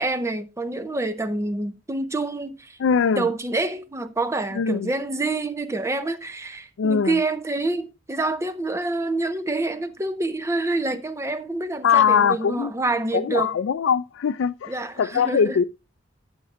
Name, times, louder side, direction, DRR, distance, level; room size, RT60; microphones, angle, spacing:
voice 1, 0.0-2.8 3.1-13.6 14.7-15.6, right 2 dB, 15° right, 0.6 m, -27 dB
voice 2, 2.8-3.3 4.5-4.9 6.8-7.2 11.8-12.7 13.1-14.7 15.0-15.6, left 7 dB, 80° left, 0.4 m, -21 dB
14.0 x 6.1 x 2.5 m
head